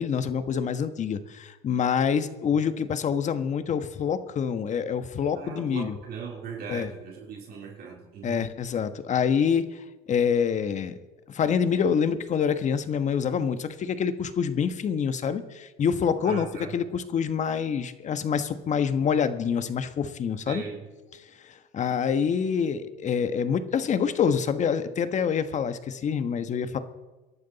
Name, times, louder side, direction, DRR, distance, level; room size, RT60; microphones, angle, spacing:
voice 1, 0.0-6.0 6.7-6.9 8.2-10.9 11.3-16.5 16.7-20.6 21.4-26.8, left 7 dB, 40° left, 10 dB, 1.3 m, -26 dB
voice 2, 5.3-8.5 16.2-16.8 20.5-20.9, right 6 dB, 55° right, -1 dB, 3.8 m, -39 dB
27.0 x 11.5 x 4.1 m, 1.2 s
cardioid pair, 115°, 19 cm